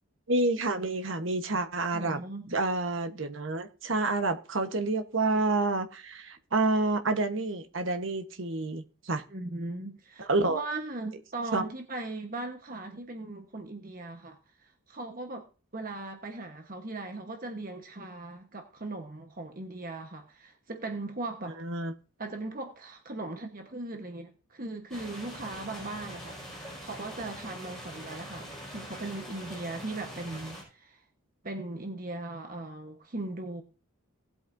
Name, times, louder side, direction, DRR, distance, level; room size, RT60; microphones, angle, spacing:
voice 1, 0.3-2.2 2.5-9.2 10.2-10.6 11.5-11.6 21.6-21.9, right 2 dB, 60° right, 1.2 m, -28 dB
voice 2, 1.9-2.5 9.3-15.5 15.7-21.6 22.2-31.0 31.4-33.6, right 2 dB, 40° right, 1.2 m, -39 dB
sound 1, 24.9-30.6, equal, ahead, 5.3 m, -43 dB
18.5 x 8.2 x 2.7 m
head